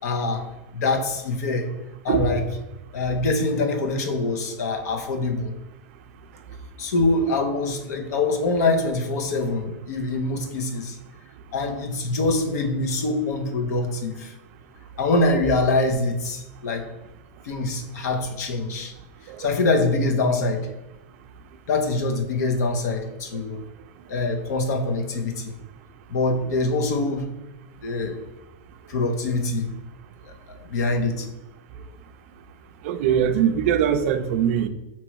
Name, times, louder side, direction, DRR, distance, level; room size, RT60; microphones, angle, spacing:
voice 1, 0.0-0.5 0.7-1.7 2.0-2.5 2.9-5.5 6.8-11.0 11.5-14.3 15.0-16.8 17.4-18.9 19.4-20.7 21.7-23.6 24.1-25.5 26.1-27.3 27.8-28.2 28.9-29.7 30.2-31.3, left 2 dB, 90° left, 4 dB, 0.7 m, -24 dB
voice 2, 32.8-34.7, right 8 dB, 55° right, 9 dB, 0.4 m, -21 dB
3.0 x 3.0 x 4.5 m, 1.0 s
supercardioid pair, 160°, 9 cm